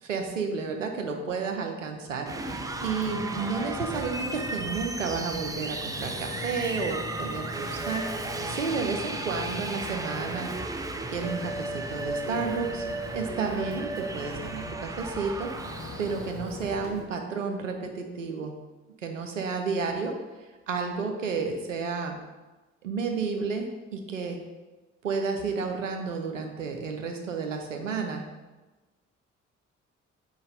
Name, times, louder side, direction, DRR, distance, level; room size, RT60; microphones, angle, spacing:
voice 1, 0.0-10.5 11.1-12.9 13.1-15.5 16.0-18.5 19.0-20.2 20.7-22.2 22.8-24.4 25.0-28.3, right 4 dB, 90° right, 3 dB, 0.5 m, -31 dB
sound 1, 2.2-16.4, right 3 dB, 10° right, 0.4 m, -35 dB
Wind, 2.3-17.0, left 2 dB, 40° left, 1.3 m, -40 dB
4.8 x 3.9 x 5.0 m, 1.2 s
figure-of-eight pair, 45°, 37 cm